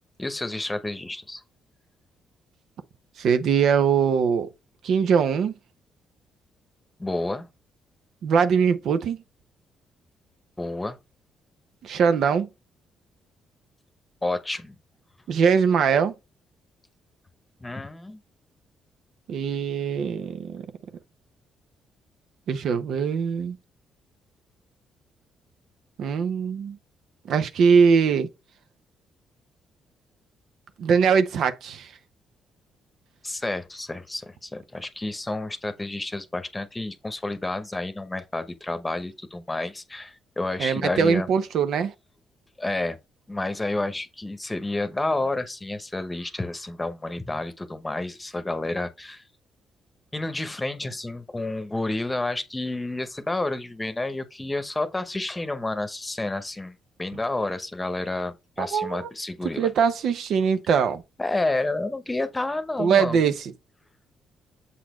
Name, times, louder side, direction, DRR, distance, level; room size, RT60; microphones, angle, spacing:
voice 1, 0.2-1.4 7.0-7.5 10.6-11.0 14.2-14.7 17.6-18.2 33.2-41.3 42.6-43.0 43.3-49.2 50.1-59.7 61.2-63.2, left 2 dB, 15° left, 1.0 m, -30 dB
voice 2, 3.2-4.5 4.8-5.5 8.2-9.2 11.8-12.5 15.3-16.1 19.3-20.7 22.5-23.6 26.0-26.8 27.3-28.3 30.8-31.9 40.6-41.9 58.6-59.1 59.6-61.0 62.8-63.5, right 6 dB, 70° right, 0.8 m, -22 dB
7.5 x 4.1 x 3.1 m
cardioid pair, 90°, 0 cm